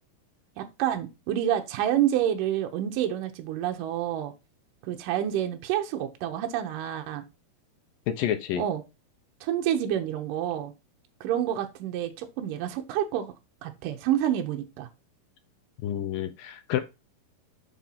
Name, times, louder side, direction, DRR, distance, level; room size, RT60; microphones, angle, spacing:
voice 1, 0.6-4.3 4.9-7.3 8.6-8.8 9.4-10.7 11.2-13.3 13.6-14.9, right 11 dB, 70° right, 2.2 m, -28 dB
voice 2, 8.1-8.6 15.8-16.8, left 11 dB, 70° left, 2.3 m, -29 dB
6.9 x 4.4 x 5.7 m
omnidirectional pair, 4.6 m